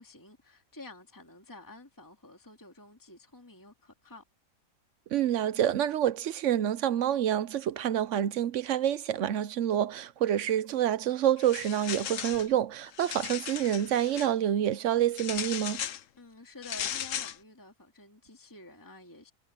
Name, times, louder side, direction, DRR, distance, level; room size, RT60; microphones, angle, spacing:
voice 1, 0.0-4.2 16.2-19.3, left 2 dB, 15° left, 2.1 m, -50 dB
voice 2, 5.1-15.8, right 10 dB, 70° right, 1.0 m, -27 dB
sound 1, 11.4-12.5 12.9-14.3 15.2-16.0 16.6-17.4, left 10 dB, 75° left, 1.2 m, -36 dB
omnidirectional pair, 1.4 m